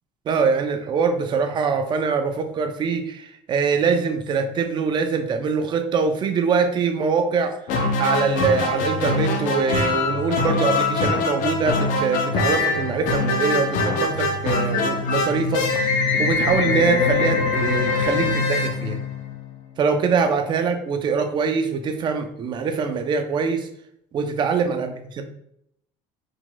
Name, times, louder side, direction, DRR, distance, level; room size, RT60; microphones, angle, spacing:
voice 1, 0.3-7.6 8.0-15.8 16.2-19.0 19.8-23.7 24.1-24.9 25.2-25.3, right 5 dB, 35° right, 7 dB, 0.5 m, -23 dB
sound 1, 7.7-19.5, left 3 dB, 75° left, 0.7 m, -23 dB
4.8 x 3.8 x 2.2 m, 0.75 s
cardioid pair, 150°, 14 cm